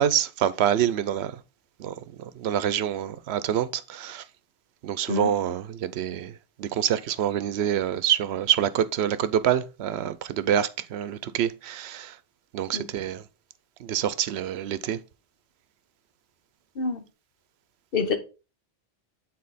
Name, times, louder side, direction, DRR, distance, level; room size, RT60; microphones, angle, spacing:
voice 1, 0.0-1.3 1.8-1.9 2.4-4.2 4.8-6.3 6.6-12.1 12.5-13.2 13.8-15.0, right 10 dB, 80° right, 0.8 m, -26 dB
voice 2, 5.1-5.3 12.7-12.9 16.8-17.0 17.9-18.2, left 4 dB, 60° left, 1.2 m, -26 dB
8.6 x 4.1 x 4.1 m
omnidirectional pair, 1.1 m